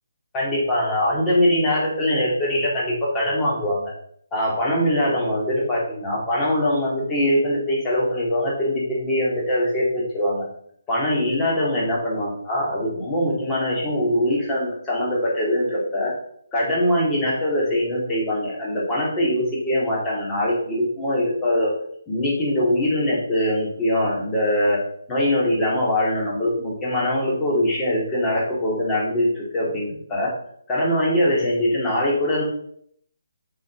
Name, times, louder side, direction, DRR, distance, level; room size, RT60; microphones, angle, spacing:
voice 1, 0.3-3.9 4.3-10.5 10.9-16.1 16.5-21.7 22.1-24.8 25.1-30.3 30.7-32.4, left 1 dB, 15° left, -5 dB, 2.3 m, -22 dB
7.3 x 4.9 x 3.7 m, 0.67 s
figure-of-eight pair, 145°, 0 cm